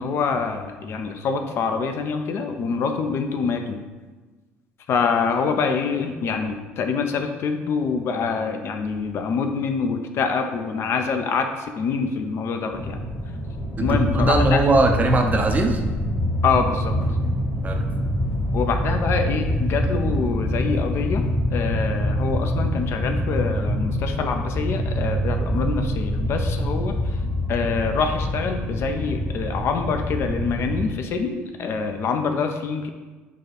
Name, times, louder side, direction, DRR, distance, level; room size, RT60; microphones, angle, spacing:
voice 1, 0.0-3.8 4.9-13.0 13.8-14.6 16.4-16.9 18.5-26.9 27.5-32.9, left 5 dB, 40° left, 5 dB, 0.3 m, -25 dB
sound 1, 12.7-30.9, equal, 15° left, 0.9 m, -25 dB
voice 2, 13.8-15.8 17.6-17.9, right 2 dB, 25° right, 4 dB, 0.5 m, -20 dB
4.1 x 2.3 x 4.2 m, 1.3 s
figure-of-eight pair, 60°, 7 cm